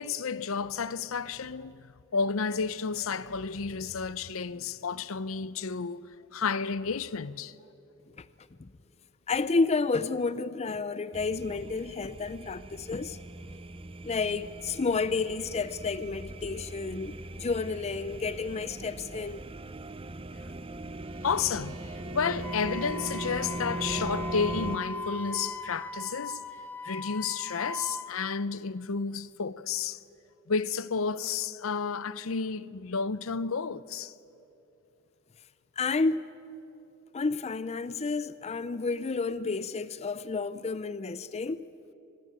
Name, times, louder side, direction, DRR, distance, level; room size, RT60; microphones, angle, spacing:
voice 1, 0.0-6.1 6.3-7.5 21.2-21.8 22.1-26.4 26.8-30.0 30.5-34.1, left 5 dB, 65° left, 0.6 m, -31 dB
voice 2, 9.3-13.2 14.0-19.4 35.8-36.3 37.1-41.7, left 4 dB, 30° left, 0.5 m, -30 dB
sound 1, 11.1-24.8, right 2 dB, 25° right, 0.7 m, -40 dB
Bowed string instrument, 20.8-25.6, right 1 dB, 70° right, 2.3 m, -42 dB
Wind instrument woodwind instrument, 22.4-28.1, left 2 dB, 10° left, 1.4 m, -39 dB
26.0 x 20.5 x 8.9 m
head